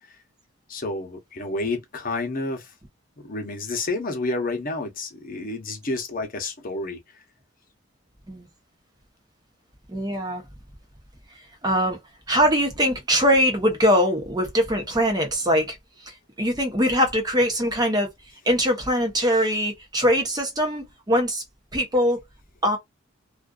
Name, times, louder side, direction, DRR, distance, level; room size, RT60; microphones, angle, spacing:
voice 1, 0.7-2.7 3.2-7.0, left 2 dB, 45° left, 0.9 m, -30 dB
voice 2, 9.9-10.4 11.6-12.0 12.3-15.8 16.0-18.1 18.4-21.4 21.7-22.2 22.6-22.8, equal, 20° right, 0.8 m, -22 dB
2.5 x 2.4 x 2.3 m
head